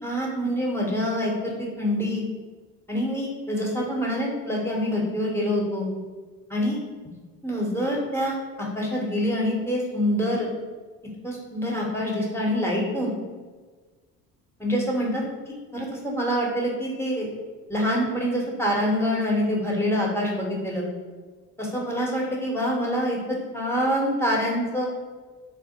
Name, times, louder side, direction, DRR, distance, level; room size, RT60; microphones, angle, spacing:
voice 1, 0.0-2.2 2.9-5.9 6.5-6.8 7.4-10.5 11.2-13.1 14.6-15.2 15.7-17.3 17.7-20.8 21.6-23.2 23.5-24.9, equal, 5° left, -3 dB, 1.2 m, -26 dB
3.5 x 2.1 x 4.3 m, 1.4 s
supercardioid pair, 70°, 37 cm